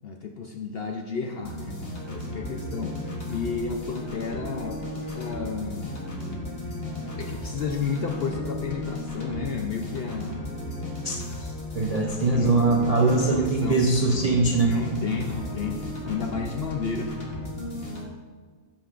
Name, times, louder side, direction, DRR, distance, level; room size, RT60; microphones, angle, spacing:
voice 1, 0.0-1.8 2.1-3.0 3.3-4.8 5.1-5.9 7.2-10.5 12.3-12.6 13.0-13.8 14.5-15.8 16.0-17.1, left 5 dB, 60° left, 3 dB, 0.6 m, -32 dB
sound 1, 1.4-18.0, left 1 dB, 45° left, 1.5 m, -35 dB
voice 2, 11.0-14.7, right 3 dB, 50° right, -1 dB, 0.4 m, -22 dB
13.0 x 5.8 x 2.4 m, 1.5 s
omnidirectional pair, 1.5 m